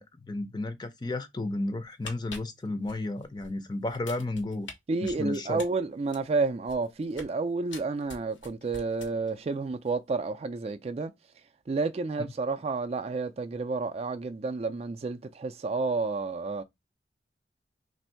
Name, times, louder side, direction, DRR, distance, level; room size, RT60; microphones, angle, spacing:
voice 1, 0.0-4.7 5.0-5.6, left 2 dB, 25° left, 0.5 m, -33 dB
sound 1, 1.8-3.5 3.9-4.7 5.1-7.4 7.7-9.5 9.7-9.9, left 3 dB, 90° left, 1.2 m, -45 dB
voice 2, 4.9-11.1 11.7-16.6, right 3 dB, 35° right, 0.3 m, -30 dB
3.4 x 2.6 x 4.3 m
head